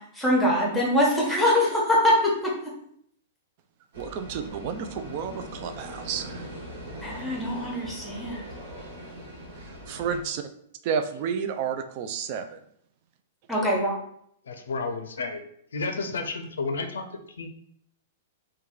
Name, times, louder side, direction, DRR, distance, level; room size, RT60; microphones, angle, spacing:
voice 1, 0.2-2.5 7.0-8.4 13.5-13.9, left 1 dB, 5° left, -3 dB, 1.0 m, -23 dB
sound 1, 3.9-10.2, equal, 70° right, 1.2 m, -41 dB
voice 2, 4.0-6.4 9.6-10.4 10.8-12.6, right 7 dB, 50° right, 8 dB, 0.4 m, -31 dB
voice 3, 14.4-15.4 15.7-17.5, left 3 dB, 90° left, 8 dB, 0.4 m, -31 dB
3.0 x 2.2 x 3.7 m, 0.69 s
hypercardioid pair, 130°, 0 cm